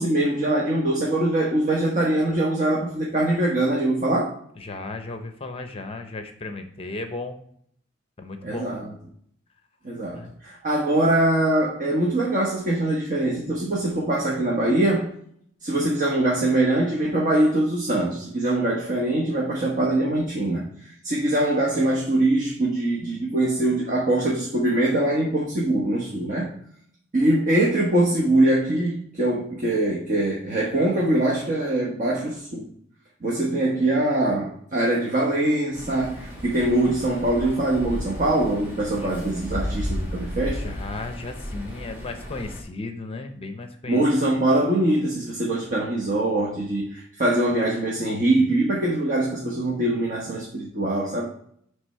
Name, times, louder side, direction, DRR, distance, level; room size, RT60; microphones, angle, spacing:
voice 1, 0.0-4.3 8.4-8.9 9.8-15.1 15.6-26.6 27.1-32.7 33.2-40.6 43.9-51.3, right 1 dB, 40° right, -4 dB, 1.1 m, -23 dB
voice 2, 4.6-7.4 8.2-8.7 10.1-10.3 38.9-39.2 40.5-44.0, left 3 dB, 30° left, 7 dB, 0.6 m, -35 dB
sound 1, 35.7-42.6, left 1 dB, 10° right, 1.6 m, -34 dB
7.9 x 3.4 x 5.4 m, 0.65 s
head